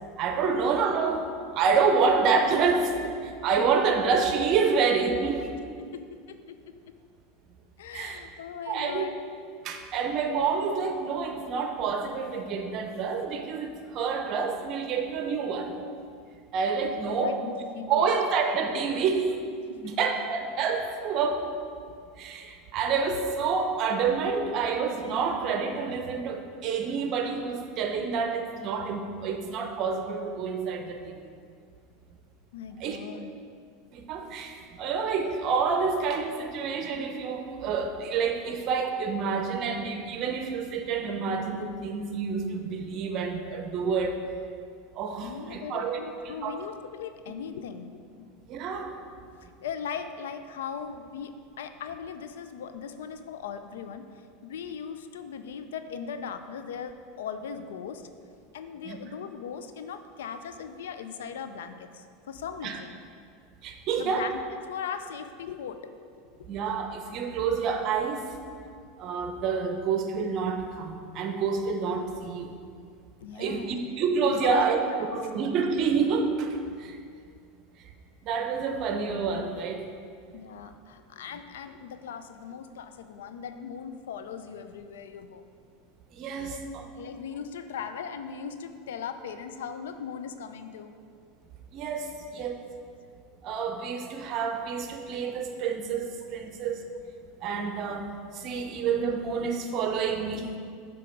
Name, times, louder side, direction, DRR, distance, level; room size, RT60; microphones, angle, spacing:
voice 1, 0.2-1.3 1.5-5.5 7.9-8.2 8.7-9.0 9.6-15.7 16.5-17.4 17.9-19.4 19.8-21.5 22.2-31.3 32.8-33.0 33.9-44.2 45.0-46.0 46.2-46.5 48.5-48.9 58.8-59.0 62.6-62.8 63.6-64.3 66.5-68.2 69.0-72.5 73.3-77.0 78.2-79.8 86.1-86.8 91.7-92.5 93.4-96.8 97.4-100.5, right 5 dB, 50° right, 5 dB, 0.7 m, -28 dB
voice 2, 5.8-6.6 7.8-9.2 16.8-18.1 19.7-19.9 32.5-33.3 45.2-48.3 49.6-54.0 54.4-58.1 58.5-63.0 64.0-64.4 64.7-65.9 73.2-73.8 74.3-74.7 75.0-75.1 80.3-85.5 86.5-86.7 87.0-90.9 92.1-92.2, left 7 dB, 85° left, 9 dB, 0.4 m, -39 dB
7.7 x 3.5 x 5.1 m, 2.3 s
supercardioid pair, 115°, 0 cm